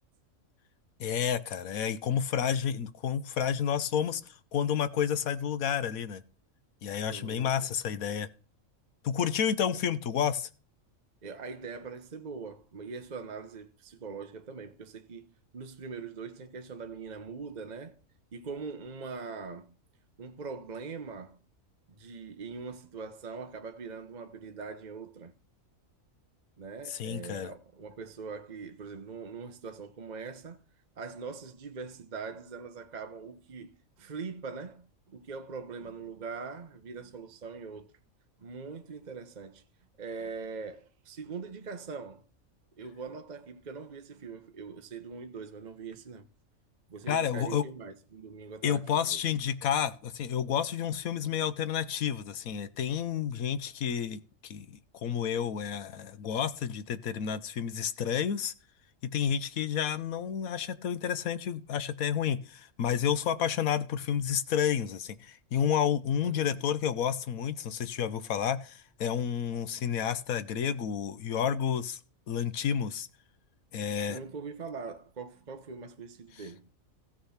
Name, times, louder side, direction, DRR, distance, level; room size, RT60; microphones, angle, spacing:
voice 1, 1.0-6.2 6.8-8.3 9.0-10.5 26.9-27.5 47.1-47.6 48.6-54.7 54.9-58.5 59.0-72.0 72.3-73.1 73.7-74.2, left 8 dB, 85° left, 1.3 m, -30 dB
voice 2, 7.0-7.5 11.2-18.0 18.3-19.7 20.2-21.4 21.9-25.3 26.6-30.6 31.0-37.9 38.4-39.6 40.0-42.2 42.8-46.3 46.9-49.2 66.2-66.6 74.1-76.7, right 5 dB, 35° right, 0.9 m, -42 dB
15.0 x 6.5 x 5.7 m
omnidirectional pair, 1.4 m